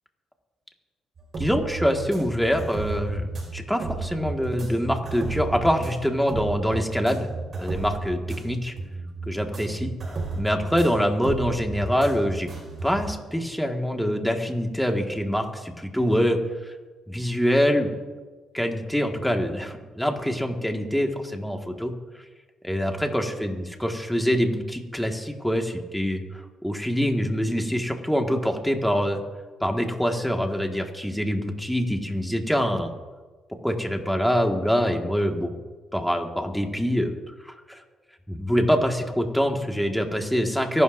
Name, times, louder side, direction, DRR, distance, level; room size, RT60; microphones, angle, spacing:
sound 1, 1.2-13.2, right 3 dB, 45° right, 5.1 m, -33 dB
voice 1, 1.4-7.3 7.6-8.7 9.3-9.9 10.4-12.5 12.8-16.4 16.7-16.8 17.1-17.9 18.5-21.9 22.6-29.2 29.6-32.9 33.6-35.5 35.9-37.1 37.4-37.8 38.3-40.8, equal, ahead, 2 dB, 1.9 m, -25 dB
24.5 x 12.0 x 2.7 m, 1.3 s
cardioid pair, 90°, 0 cm